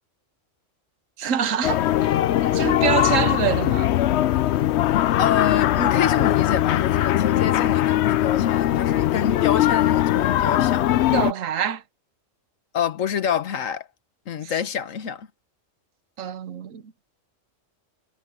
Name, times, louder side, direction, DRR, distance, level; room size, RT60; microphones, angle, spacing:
voice 1, 1.2-2.1 2.4-3.9 11.1-11.8 14.4-14.5 16.2-16.8, right 9 dB, 85° right, 1.3 m, -25 dB
sound 1, 1.6-11.3, left 13 dB, 65° left, 0.8 m, -20 dB
voice 2, 5.2-10.9 12.7-13.9 14.3-15.3, left 8 dB, 90° left, 1.5 m, -27 dB
omnidirectional pair, 1.3 m